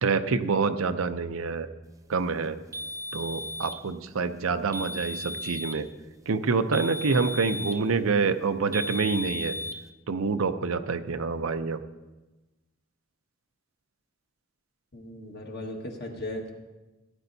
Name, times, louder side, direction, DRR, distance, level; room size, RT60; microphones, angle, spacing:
voice 1, 0.0-1.7 2.1-2.6 3.1-5.9 6.3-9.5 10.1-11.8, right 4 dB, 90° right, 10 dB, 0.6 m, -27 dB
sound 1, 2.7-3.8 4.7-5.8 6.7-7.9 8.7-9.8, left 1 dB, 15° right, 0.4 m, -35 dB
voice 2, 14.9-16.5, left 1 dB, 50° left, 1 dB, 1.6 m, -37 dB
16.0 x 9.8 x 2.7 m, 1.1 s
head